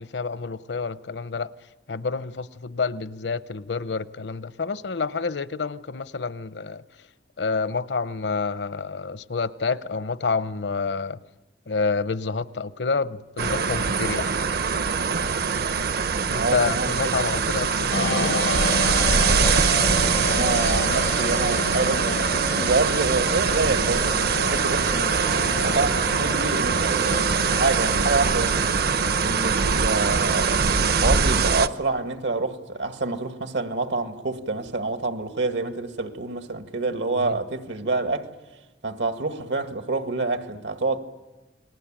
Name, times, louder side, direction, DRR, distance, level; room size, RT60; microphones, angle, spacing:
voice 1, 0.0-1.5 1.9-6.8 7.4-11.2 11.7-14.3 16.3-18.5 37.2-37.3, left 4 dB, 75° left, 0.8 m, -28 dB
sound 1, 13.4-31.7, right 5 dB, 60° right, 0.8 m, -23 dB
voice 2, 16.3-17.2 20.3-25.3 25.6-28.6 29.2-38.3 38.8-41.0, right 3 dB, 85° right, 2.0 m, -27 dB
sound 2, 17.9-29.8, left 2 dB, 90° left, 1.8 m, -30 dB
29.5 x 20.5 x 8.9 m
head